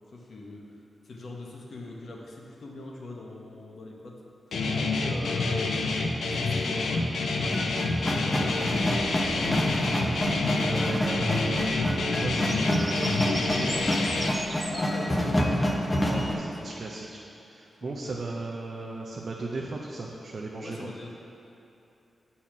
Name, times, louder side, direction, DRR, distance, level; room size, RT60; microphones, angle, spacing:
voice 1, 0.1-0.6 1.0-4.1 4.6-5.9 6.3-8.9 9.3-9.6 14.6-16.9 17.8-18.2 20.6-21.1, left 2 dB, 65° left, -1 dB, 1.2 m, -41 dB
Guitar, 4.5-14.3, left 3 dB, 90° left, 0.6 m, -28 dB
sound 1, 7.5-16.3, equal, 20° left, 0.9 m, -28 dB
Bird vocalization bird call bird song, 8.5-14.8, right 1 dB, 15° right, 0.8 m, -41 dB
voice 2, 10.5-13.9 16.0-20.9, right 2 dB, 55° right, -2 dB, 0.6 m, -36 dB
8.5 x 4.2 x 6.0 m, 2.9 s
wide cardioid pair, 95°, 0 cm